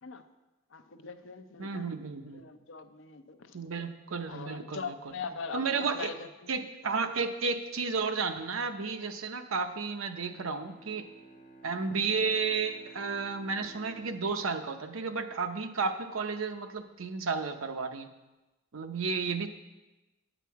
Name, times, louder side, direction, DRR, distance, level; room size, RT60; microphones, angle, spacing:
voice 1, 0.7-2.0 2.2-3.6 4.3-5.6 5.9-6.5, left 5 dB, 65° left, 9 dB, 0.6 m, -41 dB
voice 2, 1.6-2.4 3.5-4.9 5.5-6.1 6.5-11.1 11.6-18.1 18.7-19.5, right 4 dB, 85° right, 7 dB, 0.7 m, -32 dB
Bowed string instrument, 10.1-15.7, right 2 dB, 45° left, 1.0 m, -55 dB
9.2 x 8.1 x 4.6 m, 1.1 s
head